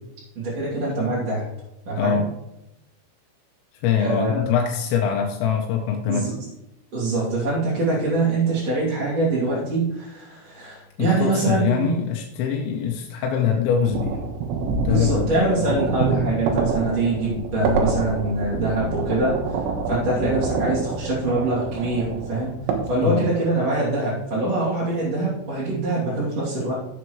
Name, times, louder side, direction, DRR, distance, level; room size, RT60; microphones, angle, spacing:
voice 1, 0.3-1.5 1.8-2.2 4.0-4.5 6.1-6.3 6.9-12.0 14.9-19.4 19.9-22.5 22.9-26.8, right 2 dB, 40° right, -7 dB, 3.1 m, -24 dB
voice 2, 2.0-2.3 3.8-6.3 11.0-14.2 14.7-15.8 23.0-23.3, left 7 dB, 75° left, 1 dB, 2.9 m, -23 dB
sound 1, 13.8-22.8, right 4 dB, 80° right, 3.5 m, -27 dB
14.5 x 7.4 x 3.1 m, 0.87 s
omnidirectional pair, 5.9 m